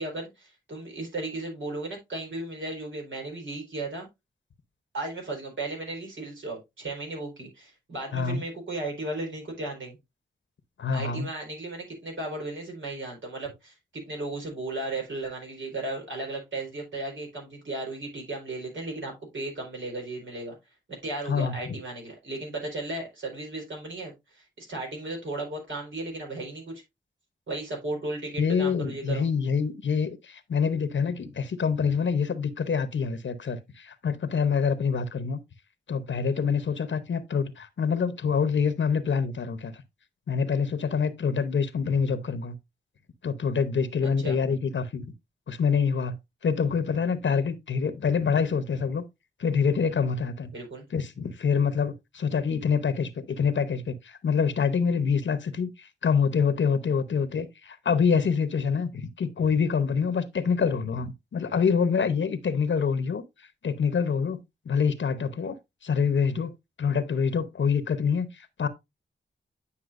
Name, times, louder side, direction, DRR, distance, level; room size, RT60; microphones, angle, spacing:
voice 1, 0.0-4.1 4.9-10.0 10.9-20.6 21.0-26.8 27.5-29.3 44.0-44.4 50.5-50.8, right 2 dB, 80° right, 4.4 m, -35 dB
voice 2, 10.8-11.3 21.3-21.5 28.4-35.4 35.9-39.8 40.3-42.6 43.2-45.1 45.5-46.2 46.4-49.0 49.4-50.5 50.9-63.2 63.6-64.4 64.7-65.6 65.8-66.5 66.8-68.7, left 6 dB, 75° left, 0.9 m, -26 dB
9.6 x 5.8 x 2.5 m
cardioid pair, 45°, 20 cm